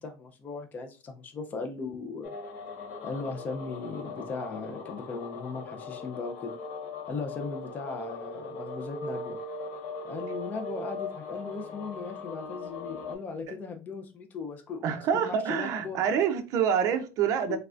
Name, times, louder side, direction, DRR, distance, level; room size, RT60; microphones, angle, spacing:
voice 1, 0.0-2.3 3.0-6.6 7.1-9.4 10.0-16.0 17.5-17.6, left 4 dB, 20° left, 0.5 m, -38 dB
sound 1, 2.2-13.2, left 3 dB, 85° left, 0.9 m, -39 dB
voice 2, 14.8-17.6, right 8 dB, 45° right, 0.5 m, -26 dB
3.6 x 3.2 x 2.4 m
cardioid pair, 165°, 8 cm